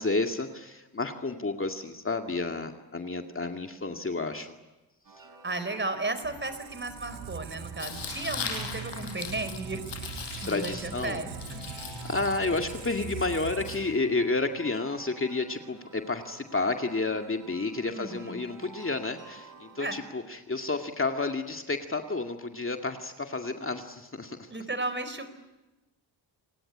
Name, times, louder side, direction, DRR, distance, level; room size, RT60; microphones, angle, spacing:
voice 1, 0.0-4.5 10.3-11.2 11.8-24.5, left 3 dB, 25° left, 4 dB, 2.2 m, -31 dB
sound 1, 5.0-19.9, right 3 dB, 45° right, 4.6 m, -52 dB
voice 2, 5.4-9.8 10.4-11.7 17.9-18.4 19.8-20.0 24.5-25.3, right 2 dB, 25° right, 11 dB, 4.3 m, -34 dB
Squeak, 6.2-14.1, right 7 dB, 75° right, 2.6 m, -42 dB
Tearing, 7.8-14.4, left 6 dB, 65° left, 6.2 m, -40 dB
28.5 x 18.0 x 9.9 m, 1.1 s
cardioid pair, 65°, 46 cm